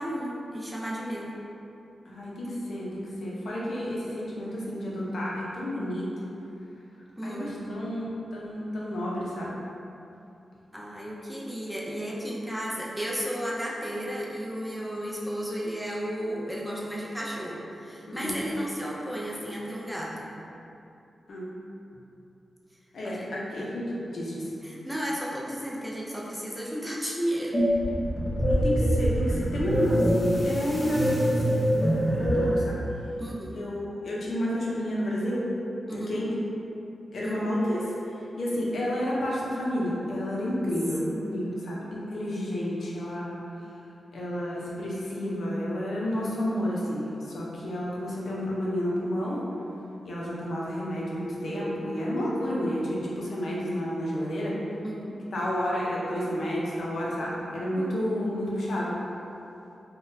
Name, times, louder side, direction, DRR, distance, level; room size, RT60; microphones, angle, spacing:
voice 1, 0.0-1.4 7.2-7.8 10.7-20.3 23.0-23.3 24.6-27.5 33.2-33.6 35.9-36.2 37.2-37.5 41.1-41.5 54.8-55.2 57.8-58.5, equal, 5° right, -4 dB, 0.4 m, -34 dB
voice 2, 2.1-6.3 7.2-8.1 8.3-9.5 18.1-18.3 21.3-21.5 22.9-24.4 28.4-32.8 33.6-35.4 35.9-36.3 37.1-37.9 38.4-43.4 44.1-49.4 50.0-54.6 55.3-58.9, equal, 70° left, -5 dB, 0.6 m, -30 dB
sound 1, 27.5-32.7, equal, 30° left, 0.8 m, -24 dB
3.7 x 2.2 x 2.6 m, 2.8 s
wide cardioid pair, 120°, 0 cm